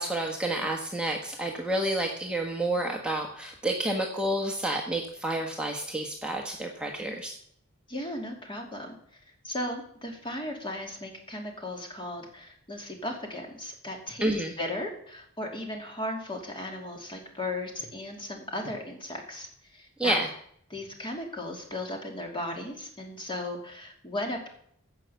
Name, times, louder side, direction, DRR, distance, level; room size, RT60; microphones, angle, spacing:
voice 1, 0.0-7.3 14.2-14.5 20.0-20.3, right 1 dB, 5° right, 0 dB, 1.2 m, -29 dB
voice 2, 7.9-8.9 9.4-20.2 20.7-24.5, left 1 dB, 25° left, 1 dB, 2.7 m, -36 dB
16.0 x 5.8 x 7.0 m, 0.67 s
head